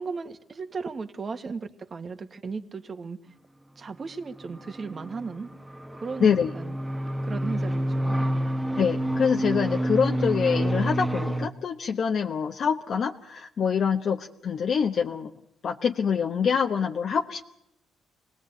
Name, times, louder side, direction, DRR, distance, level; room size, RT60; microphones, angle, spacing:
voice 1, 0.0-3.3 3.8-5.5 5.9-6.8 7.2-8.5, right 4 dB, 40° right, 9 dB, 1.8 m, -36 dB
sound 1, 4.4-11.5, right 1 dB, 10° right, 1.7 m, -28 dB
voice 2, 8.7-15.3 15.6-17.4, left 6 dB, 55° left, 2 dB, 1.2 m, -25 dB
27.0 x 19.5 x 7.8 m, 0.78 s
cardioid pair, 90°, 0 cm